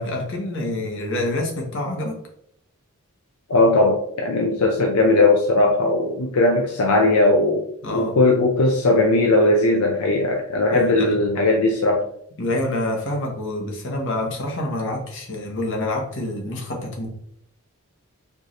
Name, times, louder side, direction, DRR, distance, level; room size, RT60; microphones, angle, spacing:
voice 1, 0.0-2.2 7.8-8.2 10.7-11.2 12.4-17.1, left 1 dB, 60° left, 0 dB, 1.0 m, -27 dB
voice 2, 3.5-7.6 7.9-12.0, left 2 dB, 80° left, 1 dB, 0.6 m, -18 dB
4.6 x 2.6 x 3.0 m, 0.68 s
head